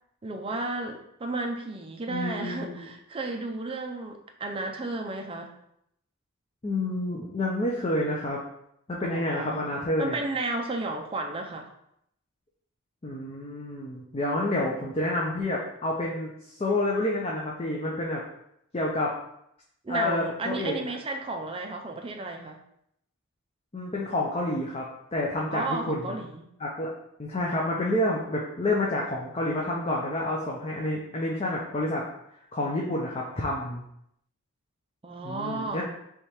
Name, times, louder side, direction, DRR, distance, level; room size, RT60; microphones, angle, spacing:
voice 1, 0.2-5.5 9.0-11.7 19.8-22.6 25.5-26.4 35.0-35.8, right 2 dB, 25° right, 3 dB, 0.4 m, -33 dB
voice 2, 2.1-2.8 6.6-8.4 8.9-10.2 13.0-16.3 16.6-18.2 18.7-19.1 19.9-20.9 23.7-24.9 25.1-26.2 26.6-26.9 27.2-32.0 32.5-33.8 35.2-35.8, left 1 dB, 30° left, -3 dB, 0.5 m, -29 dB
3.5 x 3.3 x 4.3 m, 0.76 s
head